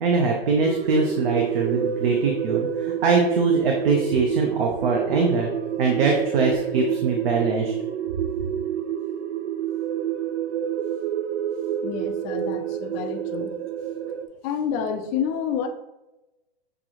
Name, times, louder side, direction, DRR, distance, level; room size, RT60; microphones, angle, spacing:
voice 1, 0.0-5.5 5.8-7.7, right 4 dB, 65° right, 1 dB, 0.8 m, -22 dB
sound 1, 0.6-14.3, right 9 dB, 85° right, 0.5 m, -28 dB
voice 2, 11.8-13.5 14.4-15.7, left 8 dB, 25° left, 6 dB, 0.4 m, -29 dB
6.8 x 2.6 x 2.9 m, 0.98 s
hypercardioid pair, 125°, 31 cm